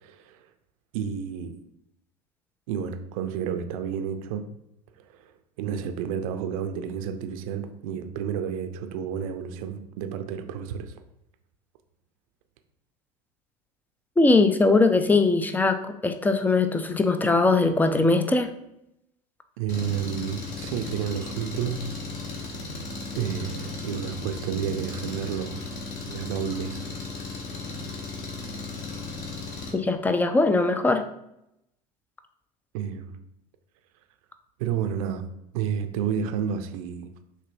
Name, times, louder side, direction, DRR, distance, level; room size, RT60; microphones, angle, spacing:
voice 1, 0.0-0.4 0.9-1.5 2.7-4.4 5.1-5.2 5.6-11.0 19.6-21.9 22.2-22.5 23.2-25.7 26.1-26.9 32.7-33.2 34.6-35.2 35.5-37.1, right 8 dB, 55° right, 0.5 m, -31 dB
voice 2, 14.2-18.5 29.7-31.0, left 3 dB, 10° left, 0.3 m, -21 dB
Engine, 19.7-29.7, left 3 dB, 50° left, 1.1 m, -36 dB
6.6 x 2.6 x 2.5 m
figure-of-eight pair, 75°, 21 cm